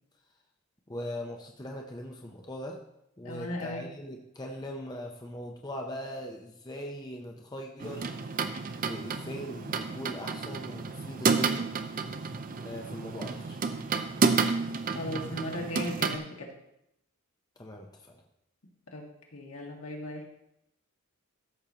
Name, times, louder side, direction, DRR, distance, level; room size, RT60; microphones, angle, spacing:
voice 1, 0.9-2.8 3.2-8.1 8.8-11.7 12.6-13.6 17.6-18.2, equal, 20° left, 1 dB, 0.7 m, -40 dB
voice 2, 3.2-3.8 14.9-16.5 18.9-19.1 19.3-20.2, left 1 dB, 75° left, -1 dB, 1.9 m, -37 dB
sound 1, 7.8-16.2, right 4 dB, 40° right, 0.5 m, -31 dB
13.5 x 6.5 x 2.9 m, 0.82 s
head